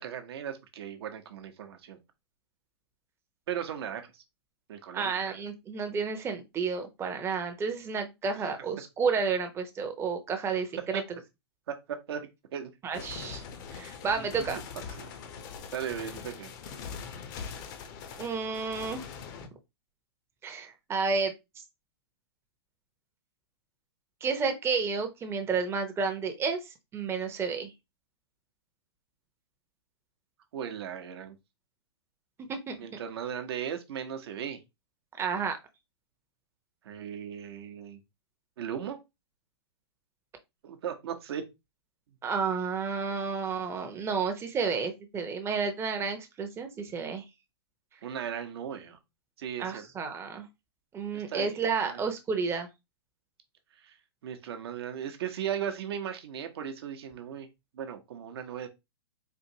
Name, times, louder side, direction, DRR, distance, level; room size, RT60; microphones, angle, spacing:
voice 1, 0.0-2.0 3.5-4.0 4.7-5.3 10.9-11.0 11.7-12.7 13.7-13.8 14.5-14.6 15.0-15.1 15.7-16.5 30.5-31.3 32.8-34.6 36.8-38.0 38.6-39.0 40.6-41.4 48.0-49.0 49.4-49.9 51.1-52.0 53.8-53.9 54.2-57.5 57.7-58.7, right 9 dB, 65° right, 0.9 m, -37 dB
voice 2, 4.9-11.0 12.8-13.4 13.7-14.6 18.2-19.0 20.4-21.3 24.2-26.6 26.9-27.7 32.5-32.8 35.2-35.6 42.2-47.2 49.6-50.5 50.9-52.7, right 5 dB, 20° right, 0.7 m, -31 dB
sound 1, 12.9-19.5, left 6 dB, 45° left, 0.7 m, -42 dB
4.4 x 2.5 x 2.8 m
hypercardioid pair, 120°, 14 cm